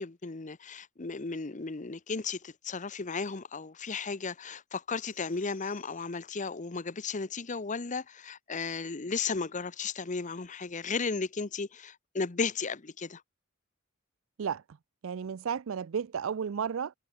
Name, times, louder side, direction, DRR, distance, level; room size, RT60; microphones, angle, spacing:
voice 1, 0.0-13.2, left 4 dB, 35° left, 0.9 m, -35 dB
sound 1, 5.0-6.5, left 12 dB, 65° left, 4.7 m, -61 dB
voice 2, 15.0-16.9, right 7 dB, 70° right, 0.4 m, -33 dB
head